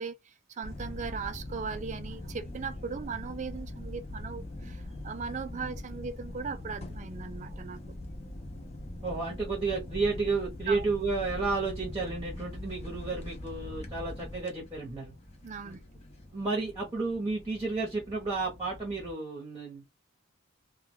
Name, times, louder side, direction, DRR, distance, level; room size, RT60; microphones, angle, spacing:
voice 1, 0.0-7.8 10.7-10.8 15.4-15.9, right 5 dB, 35° right, 0.3 m, -38 dB
sound 1, 0.6-19.1, left 1 dB, 30° left, 0.6 m, -42 dB
voice 2, 9.0-15.1 15.6-15.8 16.3-19.8, right 3 dB, 15° right, 0.8 m, -32 dB
2.2 x 2.2 x 3.2 m
head